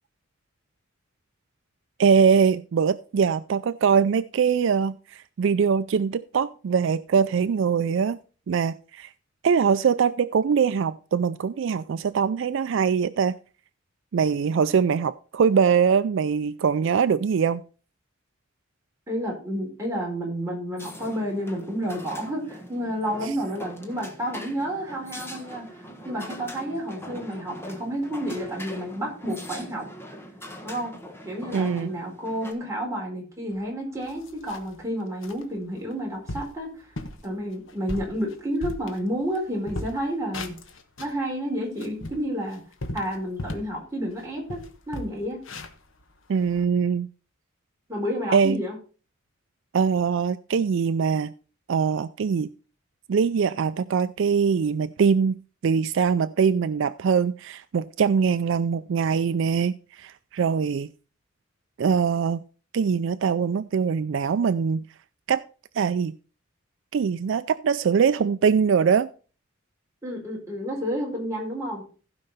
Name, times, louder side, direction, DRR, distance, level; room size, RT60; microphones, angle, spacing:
voice 1, 2.0-8.2 8.5-9.1 9.4-13.4 14.1-17.6 23.2-23.3 31.5-31.9 46.3-47.1 48.3-48.6 49.7-51.3 51.7-52.5 53.1-55.4 55.6-60.9 61.8-62.4 62.7-64.9 65.3-65.4 65.7-66.1 66.9-69.1, right 6 dB, 65° right, 14 dB, 0.4 m, -22 dB
voice 2, 19.1-29.8 30.6-30.9 31.2-36.7 37.2-40.5 41.0-42.6 42.9-45.4 47.9-48.8 70.0-71.8, equal, 15° right, -2 dB, 4.3 m, -30 dB
sound 1, 20.8-32.5, equal, 10° left, 1.4 m, -42 dB
sound 2, 33.5-33.6 34.0-34.8 35.2-35.4 35.9-36.0 36.3-36.6 37.0-37.2 37.7-39.4 39.6-41.2 41.6-43.8 44.1-44.2 44.5-46.6, left 1 dB, 70° left, 1.2 m, -37 dB
15.5 x 5.4 x 4.1 m, 0.37 s
head